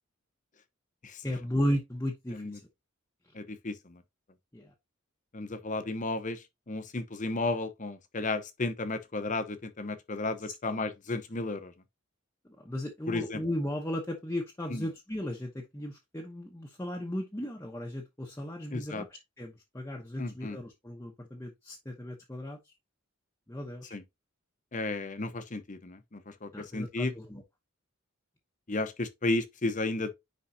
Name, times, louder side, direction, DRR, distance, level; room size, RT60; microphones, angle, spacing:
voice 1, 1.2-2.6 4.5-4.7 12.6-22.6 23.5-24.0 26.5-27.4, equal, 15° left, 0.9 m, -35 dB
voice 2, 3.3-4.0 5.3-11.7 13.1-13.4 14.7-14.8 18.7-19.0 20.2-20.6 23.9-24.0 24.7-27.1 28.7-30.1, left 2 dB, 35° left, 0.9 m, -33 dB
9.8 x 3.8 x 2.8 m
head